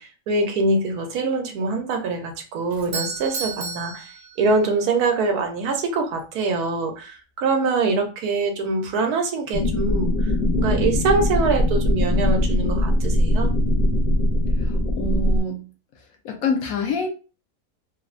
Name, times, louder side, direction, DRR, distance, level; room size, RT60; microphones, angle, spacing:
voice 1, 0.0-4.1 4.4-10.1 10.6-13.5, right 3 dB, 80° right, 3 dB, 1.2 m, -24 dB
Doorbell, 2.7-4.9, right 4 dB, 50° right, 0.6 m, -33 dB
sound 1, 9.5-15.4, left 1 dB, 85° left, 0.4 m, -21 dB
voice 2, 14.6-15.6 16.2-17.1, left 3 dB, 70° left, 2 dB, 1.0 m, -26 dB
3.3 x 2.0 x 2.4 m, 0.34 s
omnidirectional pair, 1.6 m